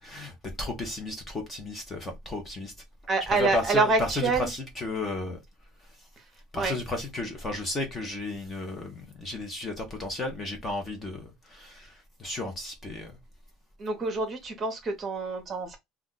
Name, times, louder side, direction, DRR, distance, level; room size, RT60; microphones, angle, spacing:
voice 1, 0.0-2.7 3.3-5.4 5.8-6.1 6.5-13.2, left 2 dB, 15° left, 0.7 m, -34 dB
voice 2, 3.1-4.5 6.2-6.3 6.5-6.8 13.8-15.8, right 3 dB, 25° right, 0.9 m, -27 dB
2.4 x 2.2 x 3.8 m
cardioid pair, 170°, 0 cm